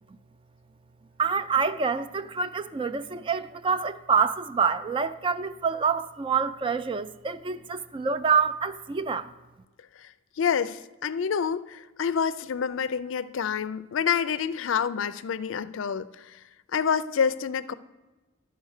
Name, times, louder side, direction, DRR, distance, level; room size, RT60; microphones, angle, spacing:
voice 1, 1.2-9.3, right 5 dB, 25° right, 0.3 m, -26 dB
voice 2, 10.4-16.4 16.7-17.7, left 7 dB, 70° left, 0.4 m, -28 dB
12.0 x 4.6 x 6.5 m
head